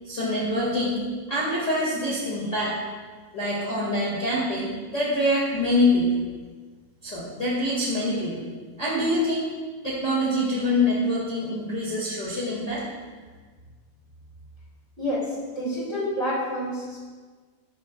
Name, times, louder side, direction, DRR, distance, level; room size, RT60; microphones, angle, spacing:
voice 1, 0.0-1.0 1.3-2.8 3.3-6.2 7.0-8.5 8.8-9.5 9.8-12.8, left 1 dB, 25° left, -7 dB, 1.9 m, -25 dB
voice 2, 15.0-17.0, equal, 15° right, -6 dB, 2.2 m, -28 dB
13.5 x 11.5 x 2.4 m, 1.4 s
omnidirectional pair, 4.0 m